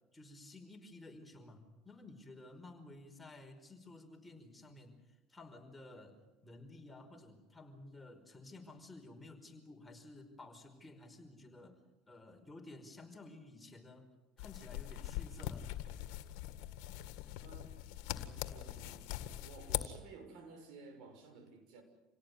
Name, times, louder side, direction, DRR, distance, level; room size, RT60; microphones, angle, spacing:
voice 1, 0.1-11.8 12.1-14.1 14.4-15.7, left 2 dB, 10° left, 3 dB, 5.2 m, -54 dB
sound 1, 14.4-19.8, left 14 dB, 75° left, 1.9 m, -42 dB
voice 2, 17.4-17.8 18.1-19.0 19.4-21.8, right 4 dB, 65° right, 7 dB, 6.4 m, -54 dB
28.0 x 17.5 x 9.7 m, 1.1 s
supercardioid pair, 95°, 0 cm